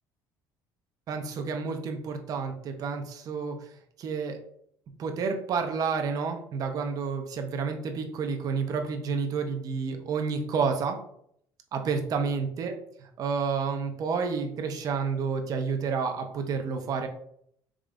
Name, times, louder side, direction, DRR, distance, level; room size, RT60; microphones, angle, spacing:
voice 1, 1.1-3.6 4.0-4.4 5.0-11.0 11.7-12.7 13.0-17.1, right 5 dB, 45° right, 5 dB, 0.7 m, -30 dB
4.9 x 3.3 x 2.5 m, 0.68 s
cardioid pair, 130°, 8 cm